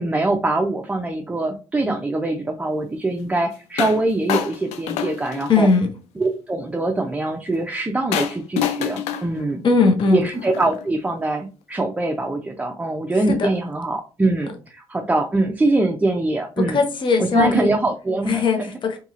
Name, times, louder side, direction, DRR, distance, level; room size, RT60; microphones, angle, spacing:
voice 1, 0.0-5.7 6.2-9.6 10.1-16.8 17.2-18.7, right 2 dB, 15° right, 2 dB, 0.4 m, -23 dB
sound 1, 3.8-4.0 4.3-5.8 8.1-10.8, left 9 dB, 85° left, 0.4 m, -27 dB
voice 2, 5.5-5.9 9.6-10.2 13.3-13.5 16.6-17.7 18.3-19.0, left 4 dB, 45° left, 5 dB, 0.6 m, -19 dB
2.8 x 2.7 x 2.5 m, 0.33 s
cardioid pair, 85°, 11 cm